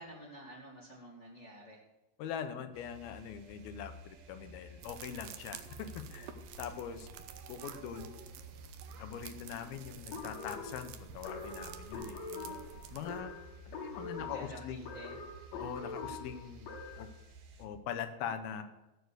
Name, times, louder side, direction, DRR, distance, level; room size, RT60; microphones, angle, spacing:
voice 1, 0.0-1.8 14.1-15.2, right 1 dB, 30° left, -3 dB, 1.4 m, -50 dB
voice 2, 2.2-6.3 6.6-7.1 7.5-8.1 9.0-13.3 13.7-14.9 15.5-16.7 17.0-17.1 17.6-18.6, left 8 dB, 75° left, 9 dB, 2.5 m, -42 dB
sound 1, 2.7-17.7, equal, 65° right, 3.1 m, -53 dB
sound 2, 4.8-13.2, right 9 dB, 80° right, 2.1 m, -50 dB
sound 3, 10.1-17.2, left 4 dB, 55° left, 3.3 m, -44 dB
15.0 x 6.8 x 6.6 m, 1.0 s
omnidirectional pair, 5.1 m